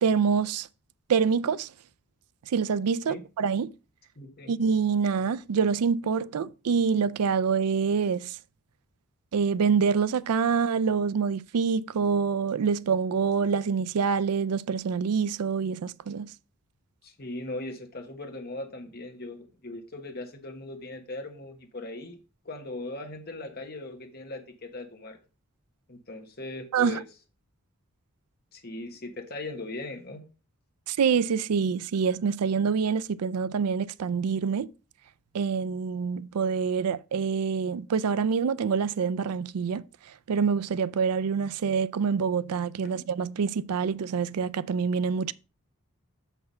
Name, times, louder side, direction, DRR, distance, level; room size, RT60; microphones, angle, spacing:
voice 1, 0.0-0.7 1.1-1.7 2.5-3.7 4.5-8.4 9.3-16.3 26.7-27.0 30.9-34.7 35.3-39.8 40.3-45.3, right 6 dB, 90° right, 0.4 m, -26 dB
voice 2, 4.2-4.5 17.0-22.2 22.4-25.2 25.9-27.0 28.5-30.2 42.8-43.1, left 2 dB, 45° left, 1.3 m, -39 dB
6.7 x 5.9 x 5.4 m
head